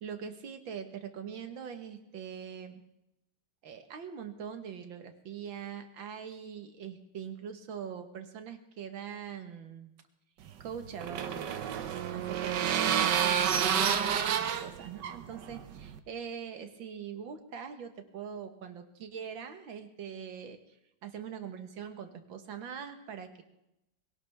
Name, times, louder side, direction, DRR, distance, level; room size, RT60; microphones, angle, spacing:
voice 1, 0.0-2.8 3.6-9.9 10.6-11.5 11.9-14.3 14.6-20.8 21.0-23.4, right 7 dB, 90° right, 7 dB, 2.2 m, -42 dB
sound 1, 10.5-16.0, right 8 dB, 70° right, 1.5 m, -30 dB
22.5 x 17.0 x 3.5 m, 0.86 s
omnidirectional pair, 2.1 m